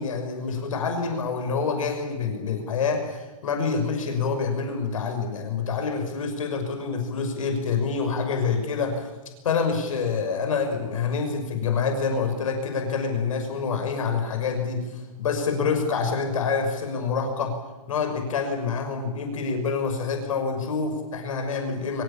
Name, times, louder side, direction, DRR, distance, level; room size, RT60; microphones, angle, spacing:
voice 1, 0.0-9.1 9.4-17.6 17.9-22.0, left 5 dB, 65° left, 5 dB, 6.0 m, -27 dB
24.5 x 18.5 x 8.7 m, 1.2 s
hypercardioid pair, 165°, 18 cm